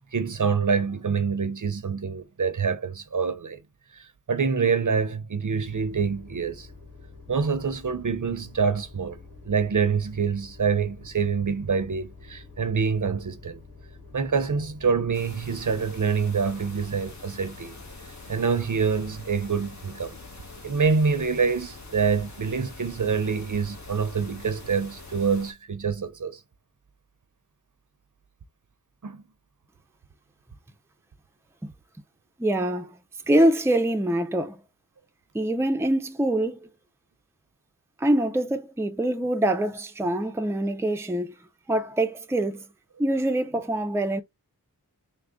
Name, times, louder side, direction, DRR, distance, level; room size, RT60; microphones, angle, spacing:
voice 1, 0.1-3.6 4.3-6.7 7.3-9.2 9.5-13.6 14.1-17.8 18.3-20.2 20.6-26.4 29.0-29.2, right 5 dB, 55° right, 0.6 m, -26 dB
sound 1, 5.6-25.2, left 3 dB, 65° left, 1.7 m, -48 dB
sound 2, 15.1-25.5, left 3 dB, 50° left, 1.1 m, -46 dB
voice 2, 32.4-33.0 33.3-34.6 35.3-36.7 38.0-41.3 41.7-42.7 43.0-44.2, right 1 dB, 5° right, 0.5 m, -24 dB
3.7 x 2.1 x 3.5 m
wide cardioid pair, 60°, 37 cm